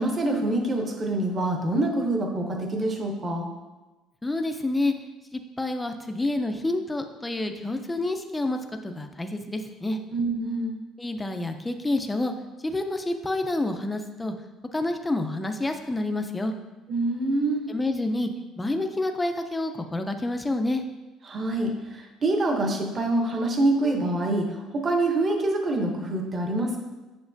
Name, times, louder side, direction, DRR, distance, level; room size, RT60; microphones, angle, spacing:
voice 1, 0.0-3.5 10.1-10.7 16.9-17.7 21.3-26.8, right 2 dB, 25° right, 3 dB, 0.7 m, -26 dB
voice 2, 4.2-4.9 5.3-10.0 11.0-12.3 12.6-14.3 14.7-16.5 17.7-18.3 18.6-20.8, left 2 dB, 10° left, 5 dB, 0.4 m, -28 dB
7.0 x 6.3 x 2.6 m, 1.1 s
cardioid pair, 170°, 0 cm